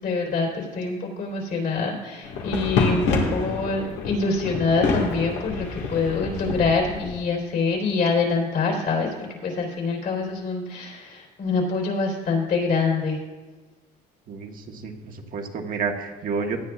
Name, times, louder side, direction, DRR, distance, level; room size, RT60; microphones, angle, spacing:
voice 1, 0.0-13.2, left 4 dB, 60° left, 0 dB, 3.7 m, -25 dB
sound 1, 2.2-7.2, left 3 dB, 90° left, 1.8 m, -27 dB
voice 2, 14.3-16.6, right 5 dB, 55° right, 2 dB, 1.3 m, -30 dB
17.0 x 10.5 x 2.4 m, 1.3 s
cardioid pair, 110°, 17 cm